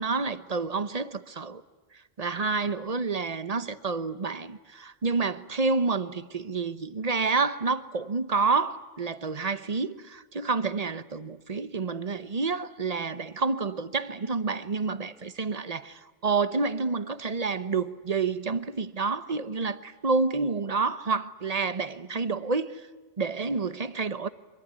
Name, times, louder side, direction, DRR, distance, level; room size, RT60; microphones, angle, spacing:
voice 1, 0.0-1.6 2.2-22.9 23.2-24.3, right 4 dB, 35° right, 1.0 m, -29 dB
24.5 x 23.5 x 9.7 m
omnidirectional pair, 1.2 m